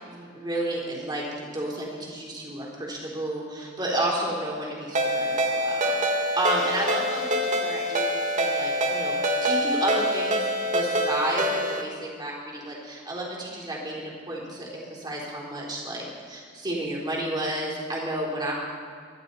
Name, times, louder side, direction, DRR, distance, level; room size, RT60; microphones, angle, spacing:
voice 1, 0.1-1.3 1.5-18.5, right 1 dB, 20° right, -3 dB, 3.5 m, -31 dB
Ringtone, 4.9-11.8, equal, 35° right, 1.5 m, -25 dB
23.0 x 11.5 x 4.1 m, 2.1 s
head